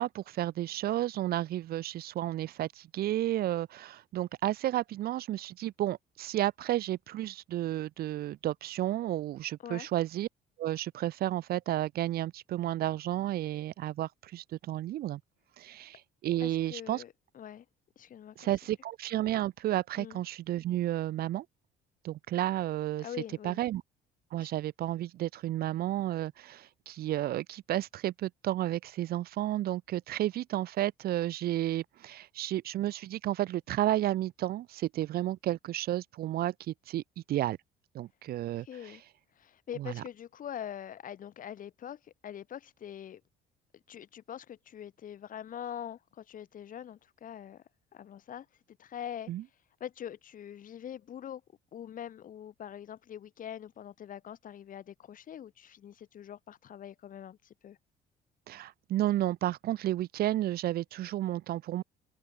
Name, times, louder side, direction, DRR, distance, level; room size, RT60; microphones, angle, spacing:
voice 1, 0.0-10.3 10.6-15.2 15.6-17.0 18.4-21.4 22.0-23.1 23.4-23.8 24.3-37.0 37.3-37.6 37.9-38.7 39.8-40.0 49.3-49.4 58.5-61.8, right 14 dB, 65° right, 1.0 m, -32 dB
voice 2, 16.4-17.7 18.0-18.5 20.0-20.2 23.0-23.6 24.4-24.5 38.6-39.0 39.4-43.2 43.9-47.6 47.9-48.5 48.8-49.3 49.8-51.4 51.7-57.8, left 9 dB, 55° left, 5.8 m, -43 dB
open air
cardioid pair, 110°, 17 cm